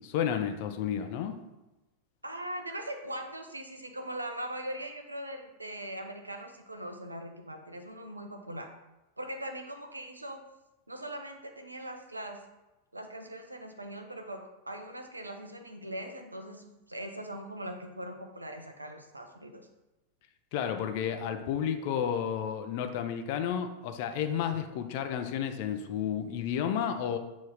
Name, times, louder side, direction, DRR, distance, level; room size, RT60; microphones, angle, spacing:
voice 1, 0.0-1.4 20.5-27.2, left 8 dB, 50° left, 7 dB, 0.5 m, -31 dB
voice 2, 2.2-8.7 9.2-10.4 10.9-12.4 12.9-19.6, right 1 dB, 85° right, 5 dB, 0.7 m, -40 dB
6.8 x 3.1 x 4.8 m, 1.0 s
figure-of-eight pair, 90°, 0 cm